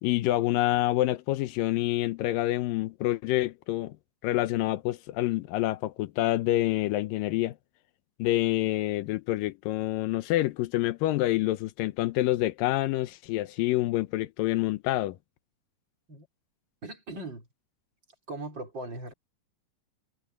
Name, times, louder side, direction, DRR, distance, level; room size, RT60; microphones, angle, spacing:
voice 1, 0.0-4.0 4.2-7.6 8.2-15.2, left 16 dB, 85° left, 2.4 m, -27 dB
voice 2, 16.8-17.5 18.3-19.1, right 2 dB, 30° right, 5.2 m, -39 dB
omnidirectional pair, 3.9 m